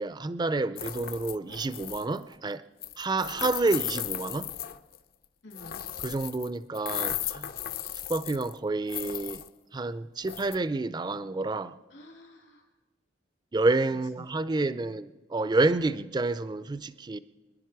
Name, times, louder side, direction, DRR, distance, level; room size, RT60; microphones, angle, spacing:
voice 1, 0.0-2.6 3.0-4.5 6.0-7.5 8.1-9.4 9.7-11.8 13.5-17.2, right 2 dB, 25° right, 0.4 m, -29 dB
sound 1, 0.8-2.2 2.8-5.0 5.5-6.5 6.7-8.6 8.9-9.5 10.2-10.6, left 11 dB, 50° left, 0.5 m, -36 dB
voice 2, 5.4-5.8 11.9-12.7 13.9-15.0, equal, 80° left, 2.5 m, -51 dB
25.0 x 10.5 x 4.7 m
head